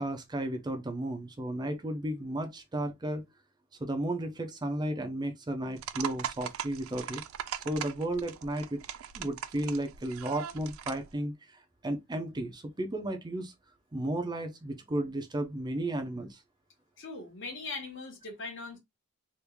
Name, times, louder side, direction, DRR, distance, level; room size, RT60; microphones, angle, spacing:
voice 1, 0.0-3.2 3.8-7.2 7.6-8.8 9.1-13.5 13.9-16.4, right 1 dB, 20° right, 0.5 m, -34 dB
sound 1, 5.8-11.1, right 9 dB, 70° right, 0.4 m, -40 dB
voice 2, 17.0-18.8, left 3 dB, 60° left, 1.4 m, -40 dB
3.5 x 2.5 x 3.0 m
head